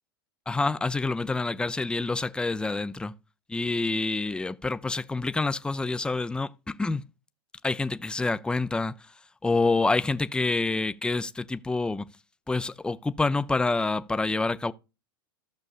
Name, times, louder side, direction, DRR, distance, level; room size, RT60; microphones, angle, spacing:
voice 1, 0.5-3.1 3.5-7.0 7.6-8.9 9.4-12.1 12.5-14.7, left 3 dB, 5° left, 0.5 m, -27 dB
15.0 x 6.5 x 2.5 m
hypercardioid pair, 100°, 13 cm